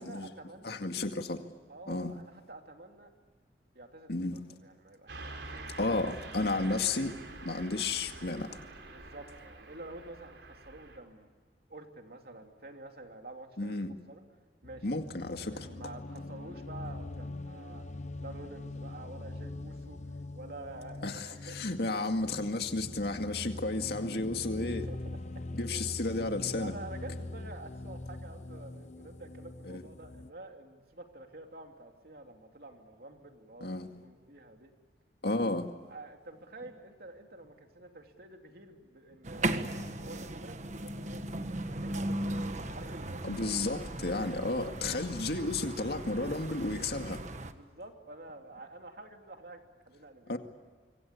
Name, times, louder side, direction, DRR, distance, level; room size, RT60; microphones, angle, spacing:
voice 1, 0.0-0.8 1.7-3.1 3.7-5.9 8.8-11.3 11.7-13.8 14.1-14.2 14.6-14.9 15.4-17.9 18.2-21.7 22.2-22.3 23.3-24.0 24.6-25.5 26.6-34.7 35.9-43.2 44.1-44.7 47.3-50.4, right 2 dB, 55° right, 3.0 m, -49 dB
voice 2, 0.6-1.4 1.9-2.1 4.1-4.4 5.8-7.1 7.4-8.5 13.6-14.0 14.8-15.7 21.0-24.9 25.5-26.7 29.6-29.8 33.6-33.9 35.2-35.7 43.2-47.2 50.3-50.4, left 2 dB, 60° left, 2.1 m, -32 dB
Car passing by / Truck, 5.1-11.0, right 2 dB, 80° right, 4.3 m, -46 dB
sound 1, 14.6-30.3, left 2 dB, 40° left, 0.9 m, -43 dB
sound 2, 39.2-47.5, right 1 dB, 40° right, 1.4 m, -37 dB
26.0 x 24.5 x 8.4 m
head